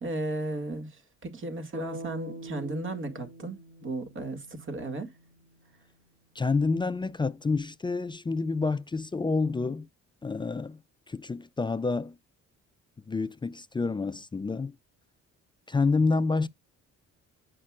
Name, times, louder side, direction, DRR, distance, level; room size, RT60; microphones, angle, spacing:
voice 1, 0.0-5.1, right 2 dB, 40° right, 2.0 m, -35 dB
sound 1, 1.7-5.8, equal, 70° right, 1.5 m, -43 dB
voice 2, 6.4-9.9 10.2-10.8 11.1-12.2 13.1-14.7 15.7-16.5, left 4 dB, 15° left, 0.3 m, -28 dB
8.7 x 5.2 x 2.4 m
cardioid pair, 90°, 30 cm